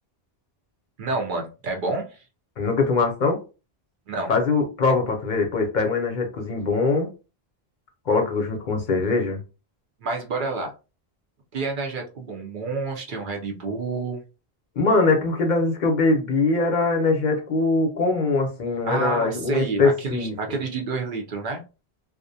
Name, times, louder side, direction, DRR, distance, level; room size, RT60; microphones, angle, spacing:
voice 1, 1.0-2.2 4.1-4.3 10.0-10.7 11.5-14.2 18.8-21.6, right 3 dB, 60° right, 2 dB, 0.7 m, -29 dB
voice 2, 2.6-3.4 4.3-7.1 8.1-9.4 14.8-20.3, left 3 dB, 55° left, 3 dB, 0.6 m, -22 dB
2.3 x 2.0 x 2.6 m, 0.32 s
omnidirectional pair, 1.0 m